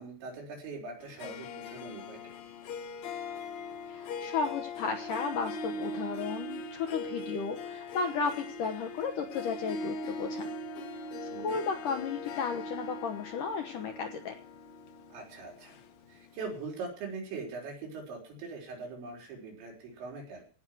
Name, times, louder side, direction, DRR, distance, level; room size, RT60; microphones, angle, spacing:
voice 1, 0.0-2.3 11.3-11.6 15.1-15.8 16.1-20.4, right 4 dB, 80° right, -1 dB, 6.5 m, -42 dB
Harp, 1.0-16.4, left 2 dB, 85° left, 1.6 m, -40 dB
voice 2, 3.9-10.4 11.4-14.3, left 5 dB, 70° left, 5 dB, 2.1 m, -34 dB
17.0 x 6.1 x 9.3 m, 0.42 s
omnidirectional pair, 5.1 m